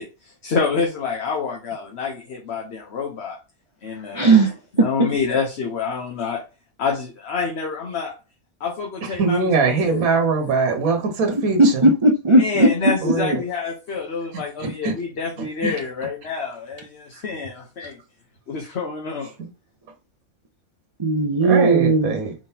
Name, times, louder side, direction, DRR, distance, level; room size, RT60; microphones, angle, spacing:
voice 1, 0.0-3.4 3.8-4.3 4.8-6.4 6.8-8.1 8.6-9.5 9.9-10.1 12.3-18.0 18.5-19.3, left 5 dB, 55° left, 1.1 m, -27 dB
voice 2, 4.1-5.1 11.3-13.2 21.0-22.1, right 2 dB, 40° right, 0.4 m, -17 dB
voice 3, 9.0-11.9 13.0-13.4 14.6-14.9 15.4-15.8 19.4-19.5 21.4-22.3, right 4 dB, 80° right, 1.5 m, -22 dB
5.0 x 3.7 x 2.8 m
omnidirectional pair, 1.5 m